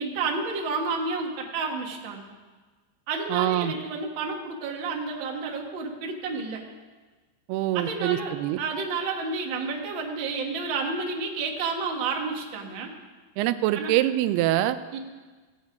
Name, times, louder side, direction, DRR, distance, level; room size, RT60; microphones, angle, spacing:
voice 1, 0.0-2.3 3.1-6.6 7.7-12.9 13.7-13.9 14.9-15.0, right 4 dB, 55° right, 1 dB, 1.3 m, -30 dB
voice 2, 3.3-3.7 7.5-8.6 13.4-14.8, right 14 dB, 90° right, 11 dB, 2.6 m, -24 dB
16.5 x 9.5 x 5.1 m, 1.3 s
omnidirectional pair, 4.5 m